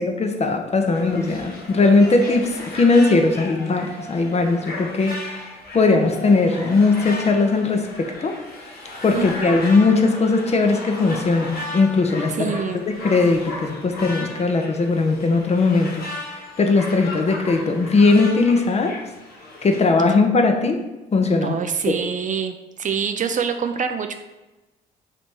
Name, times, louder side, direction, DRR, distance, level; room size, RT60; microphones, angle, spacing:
voice 1, 0.0-8.4 9.0-15.9 16.6-19.0 19.6-20.8 21.1-21.6 21.9-22.0, left 3 dB, 30° left, 5 dB, 0.6 m, -19 dB
sound 1, 0.9-19.8, left 2 dB, 50° left, 1.2 m, -35 dB
voice 2, 12.4-12.8 21.4-24.1, right 7 dB, 40° right, 7 dB, 0.4 m, -25 dB
3.3 x 2.9 x 4.3 m, 1.1 s
hypercardioid pair, 50°, 20 cm